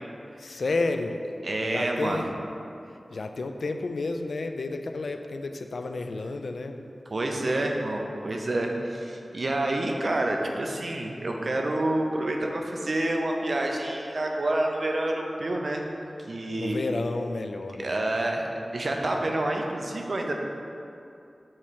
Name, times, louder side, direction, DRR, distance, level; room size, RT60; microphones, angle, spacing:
voice 1, 0.4-1.2 1.6-2.3 3.1-6.8 16.6-17.9, left 3 dB, 85° left, 6 dB, 0.3 m, -31 dB
voice 2, 1.4-2.2 7.1-15.8 16.3-16.8 17.8-18.4 18.7-20.3, right 1 dB, 60° right, 1 dB, 0.6 m, -28 dB
7.3 x 3.1 x 4.3 m, 2.6 s
wide cardioid pair, 85°, 0 cm